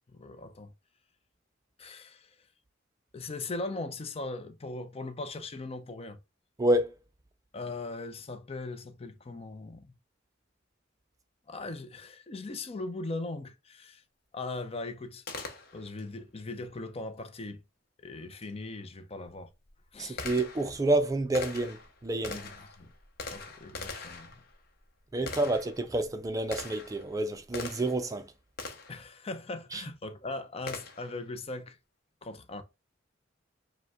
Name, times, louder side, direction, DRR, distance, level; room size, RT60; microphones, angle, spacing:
voice 1, 0.1-0.7 1.8-2.4 3.1-6.2 7.5-9.9 11.5-14.0 14.3-15.2 15.7-17.6 18.0-19.5 19.9-20.2 22.3-22.5 22.8-22.9 23.3-24.4 25.2-25.3 28.9-31.8 32.2-32.6, left 2 dB, 30° left, 0.5 m, -39 dB
voice 2, 6.6-7.0 20.0-22.4 25.1-28.3 29.7-29.8, right 2 dB, 20° right, 0.4 m, -29 dB
Gunshot gunfire, 15.3-16.1 18.4-18.5 19.2-28.1 28.6-29.1 30.7-31.2, left 3 dB, 55° left, 0.8 m, -43 dB
5.1 x 2.2 x 3.5 m
head